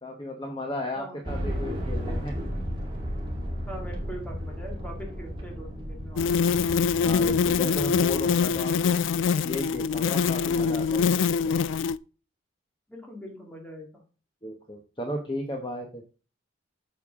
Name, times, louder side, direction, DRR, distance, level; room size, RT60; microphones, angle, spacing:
voice 1, 0.0-2.4 7.0-9.0 9.4-11.2 14.4-16.0, left 1 dB, 25° left, 3 dB, 1.0 m, -35 dB
sound 1, 1.2-8.6, equal, 25° right, 2.3 m, -34 dB
voice 2, 3.7-6.8 10.4-10.7 12.9-14.0, equal, 5° left, 0 dB, 2.1 m, -42 dB
sound 2, 6.2-12.0, left 6 dB, 70° left, 0.3 m, -24 dB
8.5 x 6.8 x 3.6 m, 0.35 s
head